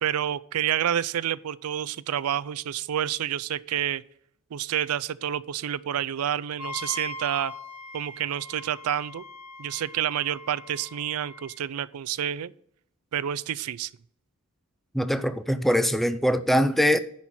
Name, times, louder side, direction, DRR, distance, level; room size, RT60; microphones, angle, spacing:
voice 1, 0.0-4.0 4.5-7.5 7.9-9.2 9.6-12.5 13.1-13.9, right 10 dB, 75° right, 0.4 m, -29 dB
Wind instrument woodwind instrument, 6.6-11.6, left 2 dB, 75° left, 1.5 m, -41 dB
voice 2, 14.9-17.0, equal, ahead, 0.4 m, -22 dB
10.5 x 4.2 x 7.4 m
head